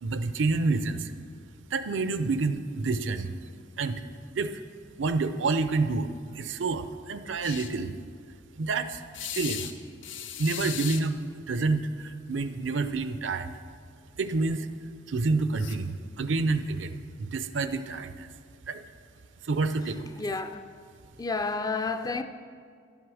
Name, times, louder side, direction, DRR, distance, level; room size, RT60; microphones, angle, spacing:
voice 1, 0.0-1.1 1.7-3.3 3.8-4.0 4.3-4.6 5.0-6.1 6.3-7.9 8.6-9.7 10.3-11.2 11.5-13.5 14.2-14.7 15.1-18.3 18.7-18.8 19.4-20.1, right 3 dB, 70° right, 0.6 m, -28 dB
sound 1, 7.4-7.7 9.1-9.7 10.0-11.0 12.4-12.6 12.9-13.0 15.6-15.8, left 10 dB, 70° left, 0.7 m, -37 dB
voice 2, 20.2-20.6 21.2-22.2, left 3 dB, 20° left, 0.4 m, -30 dB
11.0 x 8.0 x 6.2 m
head